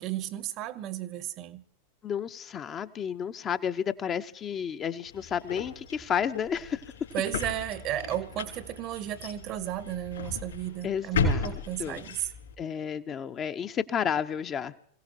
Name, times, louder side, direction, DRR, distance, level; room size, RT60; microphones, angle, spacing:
voice 1, 0.0-1.6 7.1-12.3, right 13 dB, 35° right, 0.7 m, -34 dB
voice 2, 2.0-6.8 10.8-11.5 11.8-12.0 12.6-14.7, left 8 dB, 25° left, 0.5 m, -31 dB
sound 1, 5.1-12.5, left 4 dB, 65° left, 3.3 m, -35 dB
26.0 x 16.5 x 2.9 m
figure-of-eight pair, 90°, 0 cm